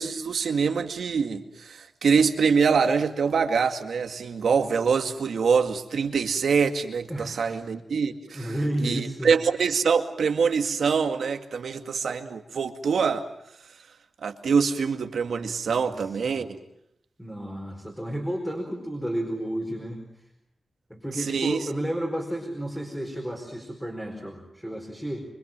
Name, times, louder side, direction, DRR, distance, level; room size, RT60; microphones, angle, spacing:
voice 1, 0.0-13.3 14.2-16.6 21.2-21.7, right 5 dB, 85° right, 6 dB, 2.1 m, -25 dB
voice 2, 7.1-7.6 8.3-9.3 15.7-16.4 17.2-20.0 20.9-25.2, right 1 dB, 5° left, 0 dB, 4.8 m, -32 dB
25.5 x 25.0 x 7.5 m, 0.77 s
wide cardioid pair, 135°, 0 cm